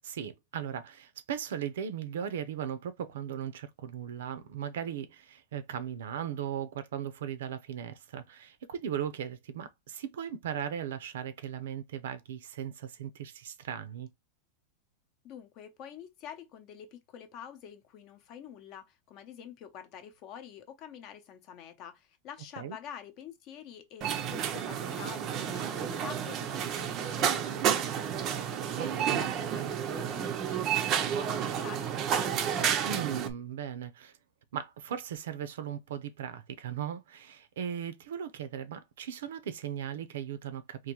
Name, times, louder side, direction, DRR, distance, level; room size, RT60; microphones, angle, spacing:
voice 1, 0.0-14.1 22.6-22.8 28.8-29.2 32.8-34.1 34.5-40.9, right 9 dB, 85° right, 0.6 m, -37 dB
voice 2, 15.2-28.6 28.9-32.5, left 8 dB, 35° left, 0.7 m, -47 dB
sound 1, 24.0-33.3, right 8 dB, 30° right, 0.5 m, -31 dB
3.7 x 2.6 x 3.0 m
supercardioid pair, 165°, 0 cm